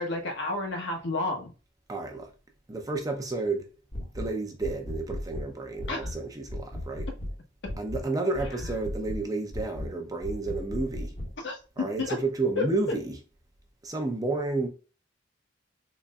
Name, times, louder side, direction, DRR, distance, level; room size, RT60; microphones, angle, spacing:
voice 1, 0.0-1.5 5.9-6.1 11.4-12.2 12.6-12.7, left 2 dB, 65° left, 1.0 m, -31 dB
voice 2, 1.9-2.3 2.7-3.7 4.1-7.1 7.8-11.1 11.8-13.2 13.8-14.7, right 3 dB, 20° right, 0.6 m, -31 dB
sound 1, 3.9-4.3 4.6-5.5 5.8-6.2 6.5-7.4 7.7-8.1 8.4-9.2 9.5-9.9 10.2-11.3, left 1 dB, 35° left, 0.9 m, -35 dB
4.0 x 3.2 x 2.3 m
head